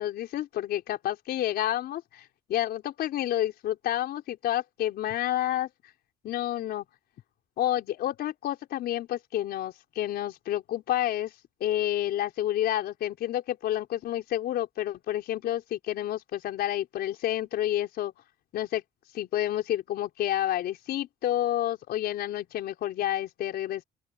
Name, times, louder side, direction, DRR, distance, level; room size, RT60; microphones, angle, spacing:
voice 1, 0.0-5.7 6.2-6.9 7.6-11.3 11.6-18.1 18.5-18.8 19.1-23.8, left 13 dB, 70° left, 4.6 m, -29 dB
open air
cardioid pair, 110°, 17 cm